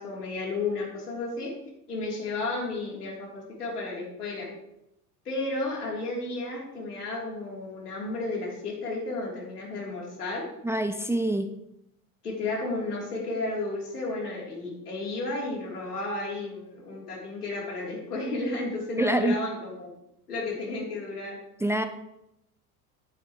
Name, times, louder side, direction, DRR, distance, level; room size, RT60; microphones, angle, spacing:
voice 1, 0.0-1.5 1.9-4.5 5.2-10.4 12.2-19.9 20.3-21.4, left 2 dB, 80° left, -2 dB, 3.3 m, -33 dB
voice 2, 10.6-11.5 19.0-19.4 21.6-21.8, right 1 dB, 5° right, 9 dB, 0.6 m, -25 dB
12.0 x 8.5 x 3.1 m, 0.85 s
figure-of-eight pair, 70°, 46 cm